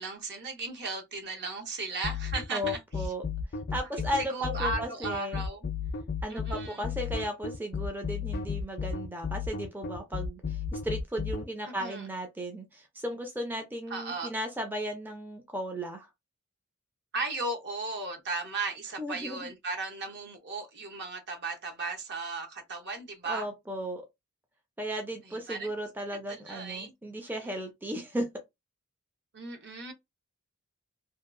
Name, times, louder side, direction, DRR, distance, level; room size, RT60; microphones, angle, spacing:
voice 1, 0.0-3.1 3.9-5.7 6.3-6.9 11.6-12.1 13.9-14.3 17.1-23.5 25.3-25.7 26.3-26.9 27.3-27.5 29.3-29.9, right 3 dB, 50° right, 0.8 m, -36 dB
sound 1, 2.0-11.4, left 6 dB, 50° left, 0.4 m, -33 dB
voice 2, 2.5-3.2 3.7-5.4 6.2-16.1 19.0-19.5 23.2-24.0 24.8-28.3, equal, 10° right, 0.4 m, -35 dB
2.7 x 2.3 x 2.4 m
head